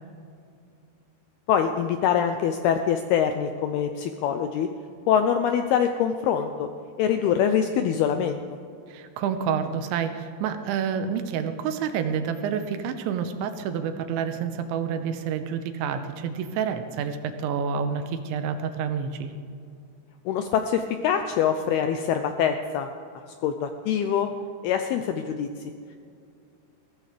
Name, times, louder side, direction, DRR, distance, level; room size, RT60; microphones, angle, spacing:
voice 1, 1.5-4.7 5.1-6.7 7.0-8.4 20.3-22.9 23.4-24.3 24.6-25.5, left 8 dB, 90° left, 7 dB, 2.2 m, -24 dB
voice 2, 8.9-19.3, right 7 dB, 85° right, 7 dB, 3.2 m, -28 dB
22.0 x 16.0 x 3.3 m, 2.4 s
omnidirectional pair, 5.3 m